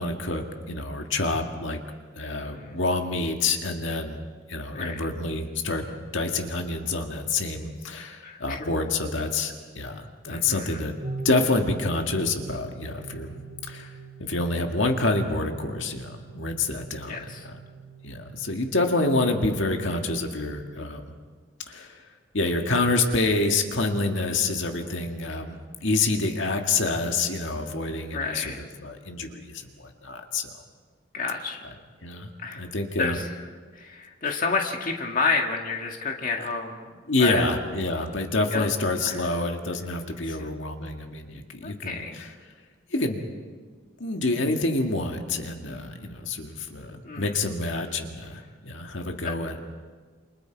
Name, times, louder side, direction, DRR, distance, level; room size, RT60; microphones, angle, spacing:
voice 1, 0.0-1.8 2.2-4.2 4.5-11.0 11.2-13.4 13.7-13.9 14.2-17.6 18.0-21.1 21.7-22.0 22.3-30.5 32.0-33.2 37.1-42.3 42.9-43.3 44.0-49.6, left 2 dB, 65° left, 3 dB, 1.9 m, -27 dB
voice 2, 2.3-2.8 4.7-5.0 8.2-8.6 10.3-10.8 17.1-17.5 28.1-28.6 31.1-31.7 32.4-32.6 33.0-33.3 33.7-36.8 37.2-37.4 38.5-38.7 39.1-39.3 40.2-40.4 41.6-42.2 47.0-47.3, left 4 dB, 40° left, 2 dB, 1.9 m, -30 dB
sound 1, 11.0-20.1, right 3 dB, 45° right, 2.4 m, -42 dB
28.5 x 27.5 x 4.7 m, 1.5 s
head